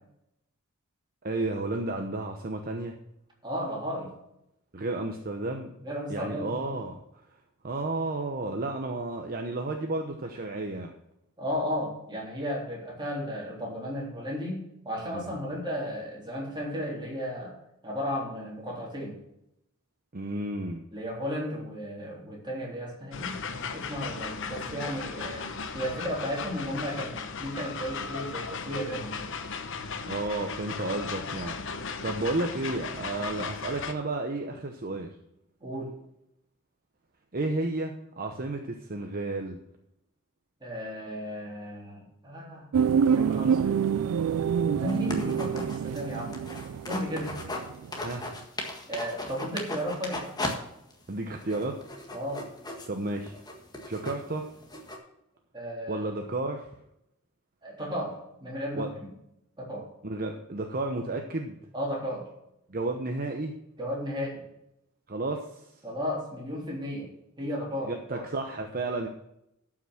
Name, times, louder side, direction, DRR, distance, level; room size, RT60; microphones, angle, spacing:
voice 1, 1.2-2.9 4.7-5.7 6.1-7.0 7.6-10.9 15.1-15.4 20.1-20.8 30.1-35.1 37.3-39.6 48.0-48.3 51.1-51.8 52.9-53.3 53.8-54.5 55.9-56.7 58.7-58.9 60.0-61.6 62.7-63.5 65.1-65.7 67.8-69.1, right 2 dB, 45° right, 3 dB, 0.9 m, -32 dB
voice 2, 3.4-4.1 5.8-6.7 11.4-17.6 17.8-19.2 20.9-29.3 35.6-35.9 40.6-42.7 43.1-43.8 44.5-46.4 46.8-47.4 48.9-50.2 52.1-52.5 55.5-56.1 57.6-59.1 59.6-59.9 61.7-62.3 63.8-64.4 65.8-68.2, equal, 20° right, -3 dB, 3.6 m, -34 dB
sound 1, 23.1-33.9, left 5 dB, 60° left, 0.9 m, -36 dB
sound 2, 42.7-48.1 48.3-48.4, right 7 dB, 85° right, 0.4 m, -27 dB
sound 3, 44.9-47.7 47.9-50.6 50.9-51.0 51.4-55.0, left 2 dB, 20° left, 1.6 m, -37 dB
12.5 x 6.0 x 6.2 m, 0.81 s
head